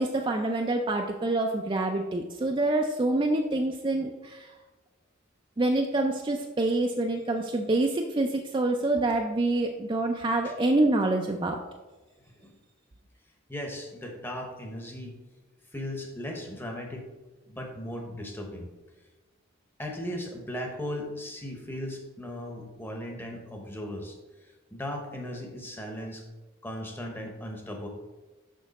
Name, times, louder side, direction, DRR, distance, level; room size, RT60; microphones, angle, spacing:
voice 1, 0.0-4.5 5.6-11.6, right 2 dB, 25° right, 2 dB, 0.4 m, -26 dB
voice 2, 13.5-15.2 15.7-17.1 17.5-18.7 19.8-24.2 24.7-26.2 26.6-27.9, left 1 dB, 10° left, 2 dB, 0.9 m, -37 dB
6.3 x 5.9 x 4.1 m, 1.2 s
head